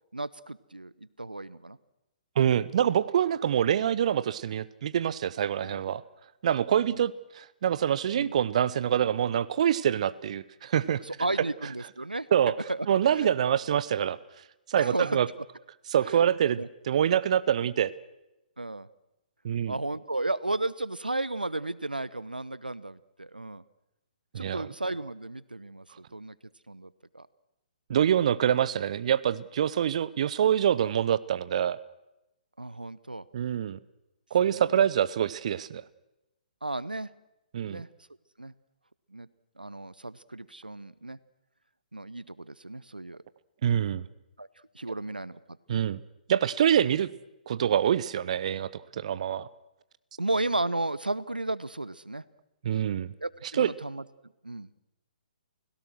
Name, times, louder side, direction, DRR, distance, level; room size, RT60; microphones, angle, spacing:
voice 1, 0.1-1.8 3.3-3.4 5.7-5.8 6.7-7.0 8.1-8.3 11.0-12.3 12.7-13.3 14.8-15.2 16.0-16.2 16.6-16.7 18.6-18.9 19.7-23.6 24.4-26.4 26.7-27.3 28.1-28.3 32.6-33.2 34.5-34.6 36.6-37.1 37.7-37.9 38.4-38.5 39.1-39.3 39.6-41.2 41.9-43.2 44.4-44.5 44.7-45.4 45.7-45.8 50.2-52.2 53.2-54.0 54.4-54.7, right 2 dB, 90° right, 19 dB, 0.8 m, -34 dB
voice 2, 2.4-6.0 6.4-11.0 12.3-12.5 12.9-14.2 14.7-15.3 15.9-16.6 16.9-17.9 19.4-19.7 24.3-24.7 27.9-31.8 33.3-33.8 34.3-35.8 37.5-37.8 43.6-44.1 45.7-46.0 46.3-47.1 47.5-49.5 52.6-53.1 53.6-53.7, right 9 dB, 50° right, 18 dB, 0.7 m, -25 dB
30.0 x 17.0 x 6.3 m, 0.91 s
figure-of-eight pair, 125°, 5 cm